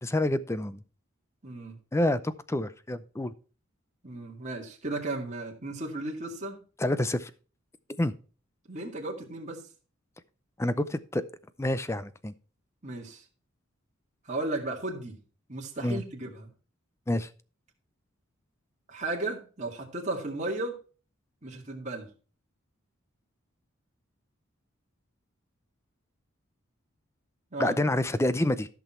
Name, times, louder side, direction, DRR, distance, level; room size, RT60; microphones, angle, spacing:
voice 1, 0.0-0.8 1.9-3.3 6.8-7.3 8.0-8.1 10.6-11.2 11.6-12.3 15.8-16.0 17.1-17.3 27.6-28.7, left 1 dB, 15° left, 15 dB, 0.5 m, -28 dB
voice 2, 1.4-1.8 4.0-6.6 8.7-9.6 12.8-13.3 14.2-15.2 15.5-16.5 18.9-20.8 21.4-22.1 27.5-27.8, right 2 dB, 35° right, -1 dB, 2.1 m, -35 dB
14.0 x 6.1 x 4.4 m, 0.37 s
head